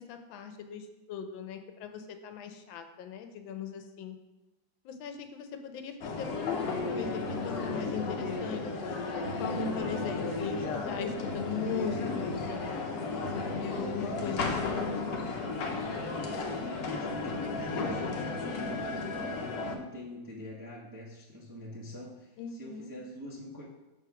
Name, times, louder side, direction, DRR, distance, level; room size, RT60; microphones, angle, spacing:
voice 1, 0.0-4.2 4.8-8.7 9.4-12.4 13.3-15.1 22.4-22.9, left 5 dB, 85° left, 7 dB, 1.4 m, -38 dB
sound 1, 6.0-19.8, left 4 dB, 65° left, 1.0 m, -34 dB
sound 2, 6.9-14.6, left 1 dB, 45° left, 1.1 m, -41 dB
voice 2, 16.4-18.8 19.2-23.6, left 1 dB, 25° right, -5 dB, 0.4 m, -44 dB
6.2 x 3.2 x 5.7 m, 1.0 s
omnidirectional pair, 2.1 m